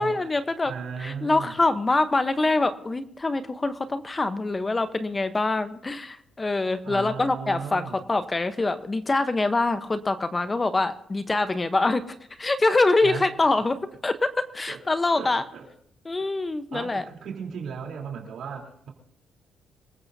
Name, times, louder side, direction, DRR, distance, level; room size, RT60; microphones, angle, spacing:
voice 1, 0.0-0.7 1.0-12.0 12.4-15.4 16.0-17.0, left 2 dB, 25° left, 10 dB, 0.9 m, -24 dB
voice 2, 0.6-1.5 6.8-8.0 13.0-13.2 14.7-14.8 15.1-15.7 16.7-18.9, right 6 dB, 70° right, 1 dB, 3.5 m, -36 dB
26.0 x 15.0 x 2.8 m, 0.69 s
cardioid pair, 90°, 0 cm